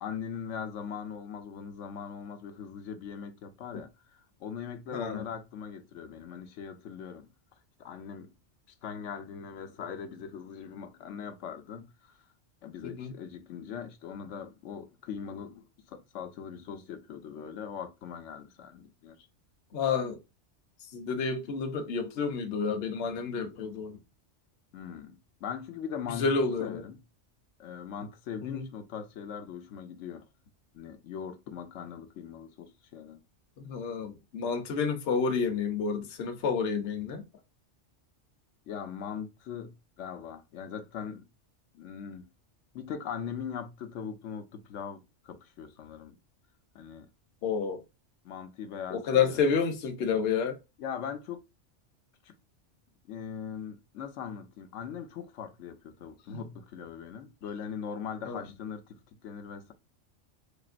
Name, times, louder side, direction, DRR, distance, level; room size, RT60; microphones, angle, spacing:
voice 1, 0.0-7.3 7.8-8.3 8.8-12.2 12.6-19.2 24.7-27.0 27.6-30.3 30.7-33.2 38.7-41.3 41.7-42.3 42.7-46.1 46.7-47.1 48.2-49.4 50.8-51.4 52.2-52.4 53.1-59.7, left 7 dB, 85° left, 1.0 m, -40 dB
voice 2, 4.9-5.2 13.0-13.1 19.7-20.2 20.9-24.0 26.2-26.8 28.4-28.6 33.6-37.2 47.4-47.8 48.9-50.6 56.3-56.4 58.3-58.4, left 5 dB, 60° left, 0.9 m, -29 dB
4.3 x 2.9 x 2.5 m
omnidirectional pair, 1.2 m